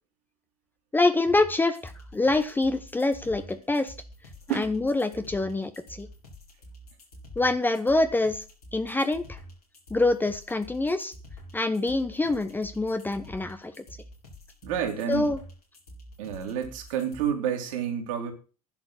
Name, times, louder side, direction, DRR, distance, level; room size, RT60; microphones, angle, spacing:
voice 1, 0.9-3.9 4.5-6.1 7.4-8.4 8.7-9.4 9.9-11.1 11.5-13.7 15.1-15.4, left 2 dB, 10° left, 10 dB, 1.0 m, -25 dB
sound 1, 1.2-17.2, equal, 80° left, 5.8 m, -47 dB
voice 2, 14.6-15.3 16.2-18.3, right 8 dB, 60° right, 3 dB, 3.3 m, -29 dB
11.0 x 6.4 x 8.0 m, 0.36 s
figure-of-eight pair, 70°, 19 cm